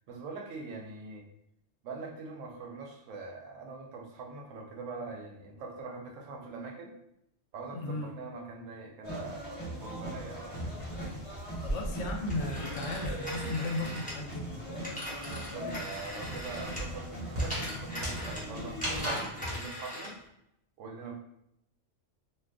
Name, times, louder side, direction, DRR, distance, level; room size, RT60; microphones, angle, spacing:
voice 1, 0.1-1.3 1.8-6.9 7.5-10.9 15.1-20.2 20.8-21.1, right 4 dB, 80° right, 2 dB, 1.0 m, -43 dB
voice 2, 7.7-8.1 11.6-14.6, left 2 dB, 75° left, 2 dB, 0.9 m, -35 dB
sound 1, 9.0-19.1, right 1 dB, 25° left, 1.0 m, -40 dB
sound 2, 9.8-13.5 13.8-19.6, equal, 35° right, 0.9 m, -38 dB
Telephone, 12.3-17.0 17.3-20.2, equal, 10° left, 0.4 m, -42 dB
2.5 x 2.4 x 3.4 m, 0.79 s
omnidirectional pair, 1.3 m